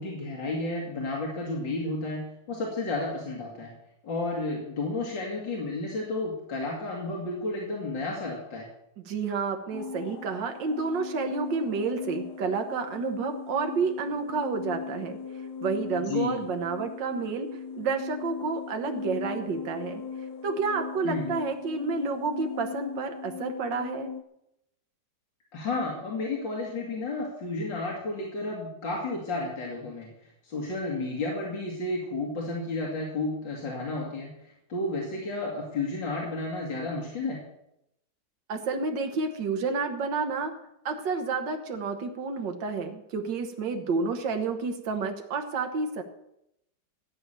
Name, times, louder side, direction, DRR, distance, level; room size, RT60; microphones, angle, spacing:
voice 1, 0.0-2.2 2.5-3.7 4.0-8.7 16.1-16.4 21.0-21.3 25.5-30.1 30.4-37.4, left 2 dB, 85° left, -2 dB, 2.9 m, -32 dB
voice 2, 9.1-15.2 15.6-17.5 17.8-20.0 20.4-24.1 38.5-40.5 40.9-46.0, right 4 dB, 80° right, 4 dB, 1.9 m, -30 dB
sound 1, 9.7-24.2, left 6 dB, 65° left, 1.4 m, -39 dB
13.5 x 8.7 x 6.7 m, 0.81 s
omnidirectional pair, 2.0 m